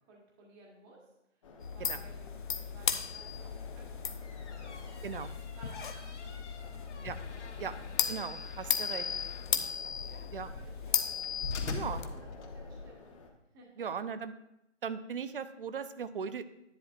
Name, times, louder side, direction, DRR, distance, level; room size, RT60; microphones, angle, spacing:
voice 1, 0.0-2.3 2.6-6.9 7.5-7.8 8.6-11.1 11.8-13.0 13.5-13.9, right 2 dB, 15° right, -1 dB, 1.5 m, -58 dB
sound 1, 1.4-13.3, left 4 dB, 25° left, 1.0 m, -53 dB
sound 2, 1.6-12.0, left 6 dB, 45° left, 0.6 m, -36 dB
sound 3, 4.2-12.9, left 3 dB, 70° left, 1.8 m, -44 dB
voice 2, 8.1-9.1 10.3-10.5 11.7-12.0 13.8-14.3 14.8-16.4, right 6 dB, 50° right, 13 dB, 0.6 m, -38 dB
10.5 x 10.5 x 2.5 m, 0.87 s
hypercardioid pair, 160°, 37 cm